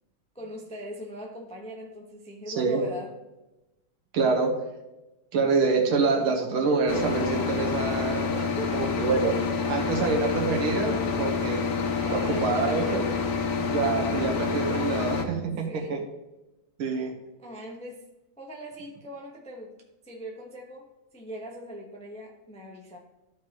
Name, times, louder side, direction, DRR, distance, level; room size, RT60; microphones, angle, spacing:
voice 1, 0.3-3.1 8.1-8.9 11.9-13.2 15.4-16.0 16.9-17.0 17.4-18.0 18.4-19.7 20.0-23.0, equal, 10° left, 0 dB, 0.4 m, -41 dB
voice 2, 4.1-4.5 5.3-8.3 8.7-9.3 9.7-11.6 12.0-13.0 13.6-16.0 16.8-17.1, right 4 dB, 75° right, 2 dB, 2.0 m, -26 dB
sound 1, 6.9-15.2, left 5 dB, 55° left, 1.1 m, -28 dB
13.5 x 4.6 x 3.0 m, 1.0 s
omnidirectional pair, 2.4 m